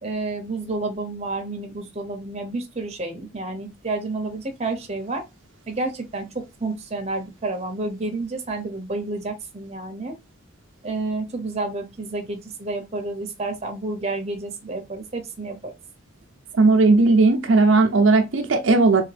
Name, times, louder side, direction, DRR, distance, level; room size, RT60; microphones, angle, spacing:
voice 1, 0.0-5.2 5.7-10.1 10.8-15.7, right 2 dB, 30° right, 0.8 m, -30 dB
voice 2, 16.5-19.0, right 3 dB, 75° right, 0.6 m, -16 dB
3.4 x 3.1 x 3.3 m
head